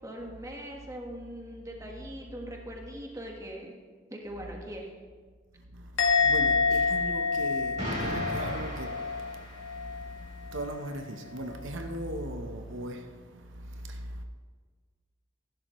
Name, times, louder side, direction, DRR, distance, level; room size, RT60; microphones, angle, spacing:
voice 1, 0.0-3.7 4.1-4.9, equal, 15° right, 1.4 m, -41 dB
voice 2, 5.7-14.2, right 1 dB, 85° right, 0.9 m, -39 dB
Musical instrument, 6.0-9.4 9.6-10.1, left 5 dB, 80° left, 1.8 m, -27 dB
Explosion, 7.8-10.0, equal, 35° right, 2.9 m, -36 dB
14.5 x 11.5 x 3.1 m
head